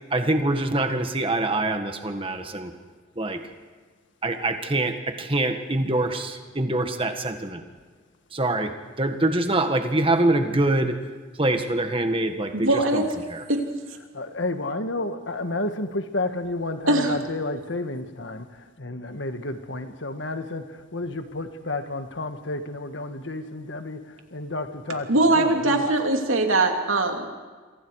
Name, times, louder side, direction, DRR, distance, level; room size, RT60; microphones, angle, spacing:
voice 1, 0.1-2.7 3.2-3.4 4.2-7.6 8.3-8.7 9.0-11.0 11.4-13.0 13.3-13.4, right 2 dB, 25° right, 6 dB, 1.7 m, -24 dB
voice 2, 12.5-13.0 13.5-13.6 16.9-17.2 25.1-27.3, right 2 dB, 85° right, 3 dB, 2.9 m, -21 dB
voice 3, 14.1-25.9, left 2 dB, 65° left, 8 dB, 1.6 m, -31 dB
28.5 x 24.5 x 4.8 m, 1.4 s
head